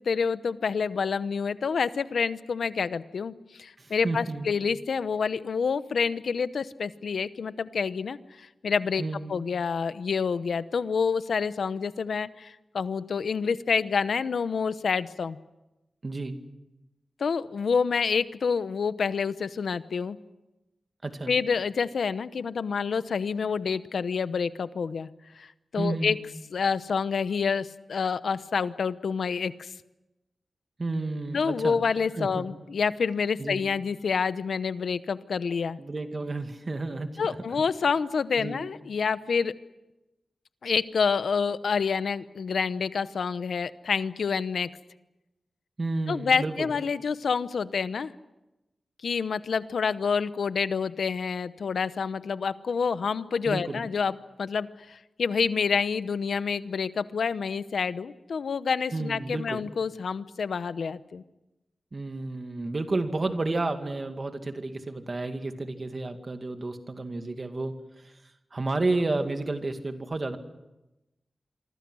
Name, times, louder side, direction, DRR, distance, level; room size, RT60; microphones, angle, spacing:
voice 1, 0.0-9.0 9.3-15.4 17.2-20.2 21.3-25.1 25.4-25.5 25.7-26.2 26.5-29.7 31.3-35.8 37.2-39.5 40.6-44.7 46.1-48.1 49.0-61.2, left 5 dB, 85° left, 13 dB, 0.9 m, -28 dB
voice 2, 3.8-4.5 9.0-9.3 16.0-16.4 21.0-21.3 25.8-26.2 30.8-31.8 32.1-32.5 33.4-33.6 35.8-37.4 38.4-38.6 45.8-46.7 53.4-53.8 58.9-59.6 61.9-67.8 68.0-68.1 68.5-70.4, right 2 dB, 40° right, 6 dB, 2.2 m, -31 dB
26.5 x 24.0 x 6.3 m, 0.99 s
wide cardioid pair, 100°, 0 cm